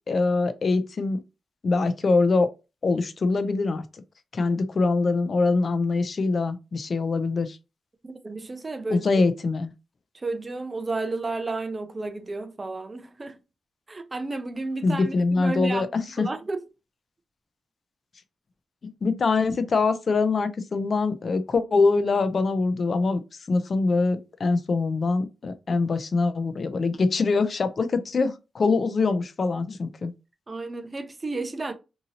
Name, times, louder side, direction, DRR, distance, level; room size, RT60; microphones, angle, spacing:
voice 1, 0.1-1.2 1.6-2.5 2.8-3.8 4.3-7.6 8.9-9.7 14.8-16.3 18.8-23.2 23.5-30.1, left 3 dB, 50° left, 0.4 m, -24 dB
voice 2, 8.0-9.1 10.1-13.4 13.9-15.9 16.2-16.6 30.5-31.7, right 3 dB, 30° right, 0.4 m, -32 dB
2.7 x 2.7 x 2.7 m
cardioid pair, 100°, 0 cm